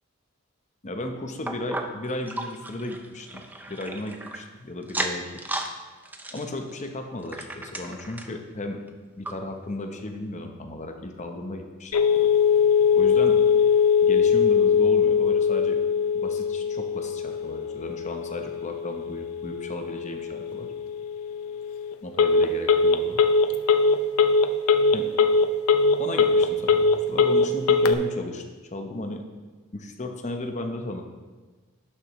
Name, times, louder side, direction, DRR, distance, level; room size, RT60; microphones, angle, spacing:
voice 1, 0.8-5.2 6.3-8.8 9.2-11.9 12.9-13.4 14.0-15.8 16.1-20.7 22.0-23.2 24.9-25.1 26.0-28.4 28.7-29.2 29.7-31.0, left 2 dB, 35° left, 4 dB, 0.8 m, -35 dB
sound 1, 1.5-4.4 4.8-5.7 6.0-8.4 8.9-9.0 9.2-9.3 10.0-10.1, right 2 dB, 10° right, 0.5 m, -35 dB
Telephone, 11.9-27.9, left 5 dB, 80° left, 0.5 m, -21 dB
11.0 x 6.6 x 3.1 m, 1.3 s
head